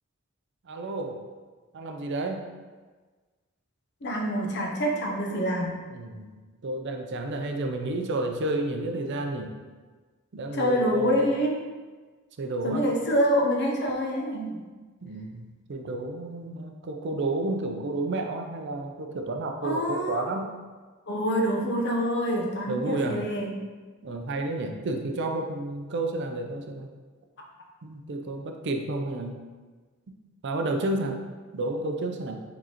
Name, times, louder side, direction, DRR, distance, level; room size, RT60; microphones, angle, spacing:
voice 1, 0.7-1.2 1.7-2.5 5.9-6.4 6.6-9.6 10.3-11.3 12.4-12.8 15.0-20.6 22.6-23.3 24.0-26.9 27.8-29.4 30.1-30.2 30.4-31.2 31.5-32.4, right 2 dB, 55° right, 4 dB, 0.5 m, -31 dB
voice 2, 4.0-5.8 10.5-11.5 12.6-14.6 19.6-20.3 21.1-23.5, equal, 55° left, 0 dB, 0.8 m, -26 dB
4.7 x 3.8 x 2.9 m, 1.4 s
head